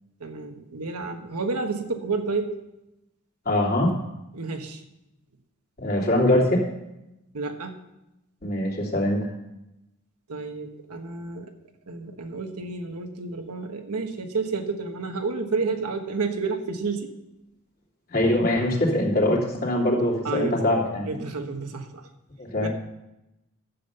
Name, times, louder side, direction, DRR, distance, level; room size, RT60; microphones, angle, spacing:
voice 1, 0.2-2.5 4.3-4.8 7.3-7.8 10.3-11.5 11.9-17.1 20.2-20.6 21.1-22.1 22.6-22.7, right 4 dB, 90° right, 5 dB, 1.3 m, -30 dB
voice 2, 3.4-3.9 5.8-6.7 8.4-9.3 18.1-21.1 22.4-22.7, left 1 dB, 40° left, -2 dB, 2.7 m, -23 dB
12.0 x 7.4 x 6.8 m, 0.92 s
head